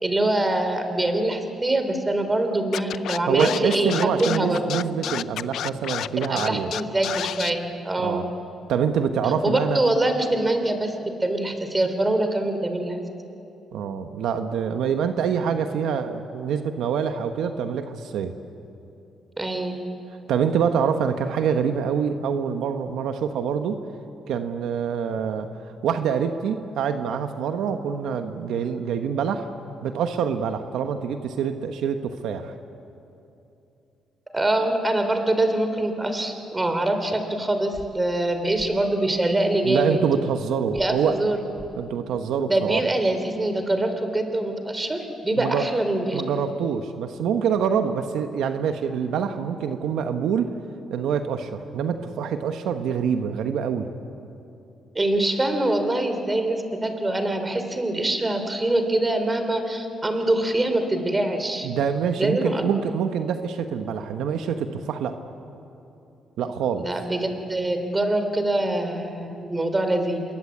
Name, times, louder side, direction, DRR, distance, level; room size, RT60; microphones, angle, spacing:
voice 1, 0.0-3.9 4.2-4.6 6.3-8.3 9.4-10.9 11.2-13.0 19.4-19.8 34.3-40.0 40.7-41.4 42.5-46.2 55.0-61.7 62.2-62.6 66.8-70.2, right 1 dB, 20° right, 7 dB, 3.4 m, -24 dB
Scratching (performance technique), 2.7-7.5, left 10 dB, 75° left, 0.5 m, -30 dB
voice 2, 3.2-6.7 8.0-8.3 8.7-9.8 13.7-18.3 20.3-23.8 24.3-29.5 29.8-32.5 39.6-41.3 41.8-42.8 45.3-45.7 46.1-50.5 50.9-53.9 61.6-65.2 66.4-66.9, right 7 dB, 80° right, 7 dB, 1.2 m, -25 dB
sound 1, 37.7-37.9 38.5-38.7 40.7-40.9 41.5-41.7, left 5 dB, 35° left, 2.3 m, -42 dB
27.0 x 22.0 x 8.7 m, 2.8 s
cardioid pair, 90°, 0 cm